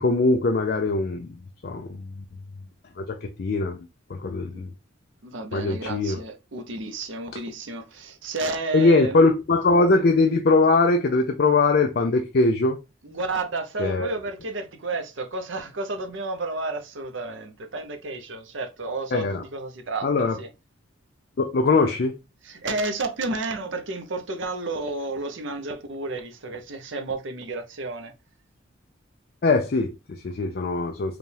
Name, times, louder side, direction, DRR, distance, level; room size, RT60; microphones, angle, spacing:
voice 1, 0.0-1.3 1.6-2.1 3.0-3.8 4.1-4.7 5.5-6.2 8.7-12.8 13.8-14.1 19.1-19.4 20.0-20.3 21.4-22.1 29.4-31.2, left 3 dB, 50° left, 0.4 m, -21 dB
voice 2, 5.2-9.3 13.0-20.5 22.4-28.1, right 3 dB, 70° right, 0.8 m, -31 dB
4.9 x 2.3 x 3.3 m
head